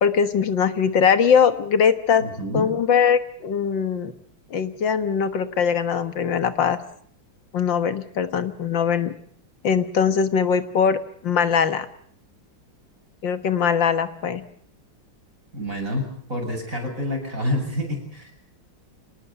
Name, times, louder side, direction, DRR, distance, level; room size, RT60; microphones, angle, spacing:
voice 1, 0.0-2.2 2.5-4.1 4.5-6.8 7.5-9.1 9.6-11.9 13.2-14.4, left 7 dB, 75° left, 11 dB, 2.0 m, -21 dB
voice 2, 2.2-2.7 15.5-18.5, left 1 dB, 45° right, 2 dB, 7.9 m, -28 dB
26.0 x 19.5 x 8.2 m, 0.64 s
omnidirectional pair, 2.1 m